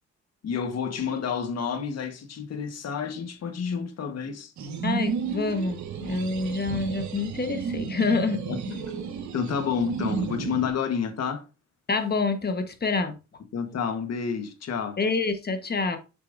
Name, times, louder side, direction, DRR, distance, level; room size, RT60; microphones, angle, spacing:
voice 1, 0.4-4.5 8.5-8.8 9.3-11.5 13.5-15.0, left 6 dB, 55° left, 1.4 m, -30 dB
sound 1, 4.6-10.7, right 6 dB, 70° right, 1.5 m, -32 dB
voice 2, 4.8-8.4 11.9-13.2 15.0-16.0, left 4 dB, 30° left, 1.3 m, -27 dB
7.6 x 6.6 x 2.6 m
cardioid pair, 90°, 30 cm